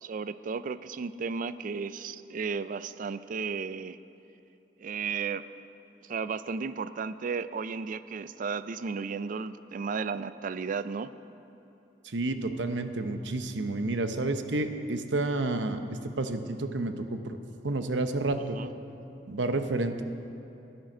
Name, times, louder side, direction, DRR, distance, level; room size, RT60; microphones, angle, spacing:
voice 1, 0.0-4.0 4.8-5.4 6.1-11.1 18.6-18.7, right 5 dB, 50° right, 14 dB, 0.4 m, -34 dB
voice 2, 12.0-17.4 17.6-18.6 19.3-20.0, right 2 dB, 85° right, 8 dB, 0.8 m, -30 dB
14.0 x 10.5 x 6.1 m, 2.9 s
head